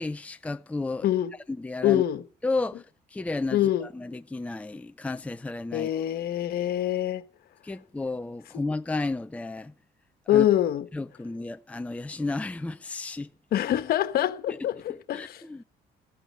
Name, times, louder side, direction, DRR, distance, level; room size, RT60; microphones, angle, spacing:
voice 1, 0.0-1.1 1.5-2.0 2.4-2.8 3.1-5.9 7.6-9.7 10.3-10.5 10.9-13.3 14.5-14.6 15.1-15.6, left 3 dB, 10° left, 0.6 m, -32 dB
voice 2, 1.0-1.3 1.8-2.2 3.5-3.9 5.7-7.2 10.3-10.9 13.5-15.4, left 12 dB, 65° left, 1.5 m, -25 dB
15.5 x 9.0 x 8.1 m
cardioid pair, 110°, 17 cm